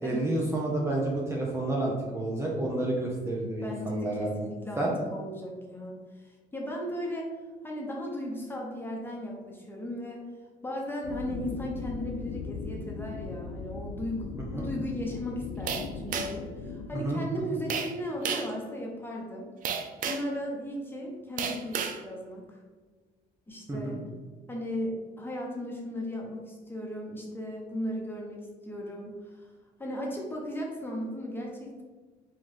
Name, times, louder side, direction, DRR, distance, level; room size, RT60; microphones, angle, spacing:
voice 1, 0.0-4.3 4.8-4.9 14.5-14.7 16.9-17.2 23.7-24.0, right 2 dB, 15° right, -3 dB, 0.7 m, -30 dB
voice 2, 3.6-7.3 7.6-10.2 10.6-19.5 20.0-22.6 23.5-24.0 24.5-29.5 29.8-31.8, equal, 10° left, -2 dB, 1.0 m, -36 dB
sound 1, 11.0-16.9, left 4 dB, 85° left, 0.4 m, -38 dB
sound 2, 15.7-16.5 17.7-17.9 18.2-18.5 19.6-20.3 21.4-22.0, right 6 dB, 55° right, 0.4 m, -32 dB
4.9 x 2.5 x 3.7 m, 1.4 s
cardioid pair, 110°, 17 cm